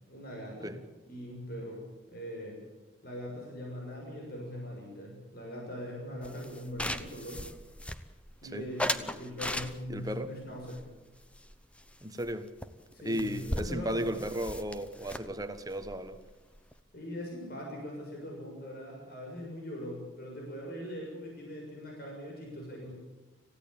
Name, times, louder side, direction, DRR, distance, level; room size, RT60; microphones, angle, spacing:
voice 1, 0.1-0.7 1.1-1.8 2.1-2.6 3.0-7.4 8.4-10.8 12.9-14.1 16.9-22.9, equal, 50° left, -1 dB, 6.9 m, -41 dB
sound 1, 6.2-8.3 8.8-10.1 10.7-11.9 12.2-12.3 12.6-12.7 12.9-16.8, left 1 dB, 5° left, 0.9 m, -38 dB
voice 2, 9.9-10.3 12.0-12.5 13.0-16.2, equal, 20° right, 9 dB, 1.4 m, -35 dB
27.0 x 16.0 x 8.9 m, 1.1 s
head